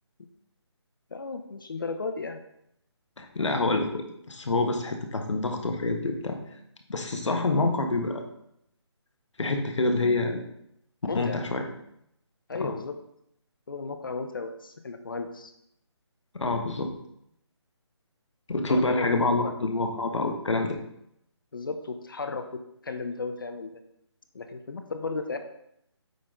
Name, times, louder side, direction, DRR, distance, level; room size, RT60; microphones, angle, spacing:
voice 1, 1.1-2.4 11.1-11.4 12.5-13.0 13.7-15.5 18.6-19.5 21.5-22.5 22.8-23.7 24.3-25.4, left 4 dB, 45° left, 7 dB, 0.7 m, -34 dB
voice 2, 3.2-6.4 6.9-8.2 9.4-10.4 11.1-11.6 12.6-12.7 16.3-16.9 18.5-20.8, left 2 dB, 90° left, 4 dB, 1.3 m, -27 dB
8.4 x 4.1 x 3.8 m, 0.76 s
hypercardioid pair, 175°, 15 cm